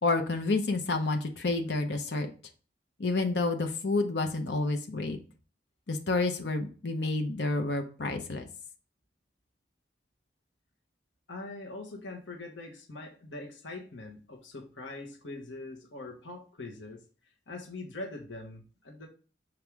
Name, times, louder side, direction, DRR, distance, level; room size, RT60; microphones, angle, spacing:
voice 1, 0.0-2.3 3.0-5.2 5.9-8.5, left 3 dB, 70° left, 5 dB, 0.9 m, -29 dB
voice 2, 11.3-17.0 17.5-19.1, left 2 dB, 85° left, 0 dB, 1.4 m, -42 dB
6.3 x 4.7 x 3.5 m, 0.37 s
head